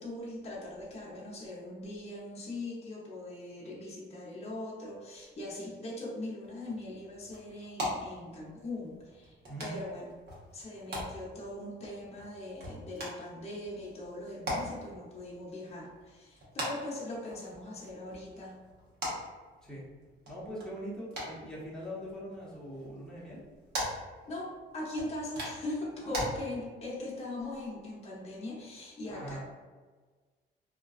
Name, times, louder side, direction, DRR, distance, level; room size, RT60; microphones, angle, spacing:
voice 1, 0.0-10.1 10.5-18.6 24.3-29.4, left 1 dB, 30° left, -4 dB, 0.7 m, -40 dB
sound 1, 6.4-26.3, equal, 55° right, 1.0 m, -42 dB
voice 2, 20.3-23.4 26.0-26.2 29.1-29.4, equal, 5° left, -6 dB, 0.8 m, -42 dB
2.4 x 2.3 x 2.3 m, 1.4 s
cardioid pair, 90°, 20 cm